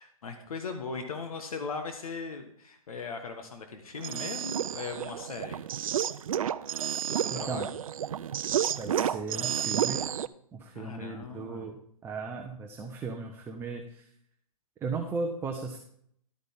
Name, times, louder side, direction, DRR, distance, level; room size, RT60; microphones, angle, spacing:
voice 1, 0.0-5.6 7.1-7.7 10.7-11.7, left 4 dB, 70° left, 5 dB, 1.5 m, -39 dB
sound 1, 4.0-10.3, right 9 dB, 65° right, 0.5 m, -31 dB
voice 2, 7.3-7.7 8.8-10.1 10.5-11.8 12.0-14.1 14.8-15.8, right 4 dB, 10° right, 2 dB, 0.9 m, -36 dB
11.5 x 9.2 x 3.7 m, 0.66 s
hypercardioid pair, 135°, 19 cm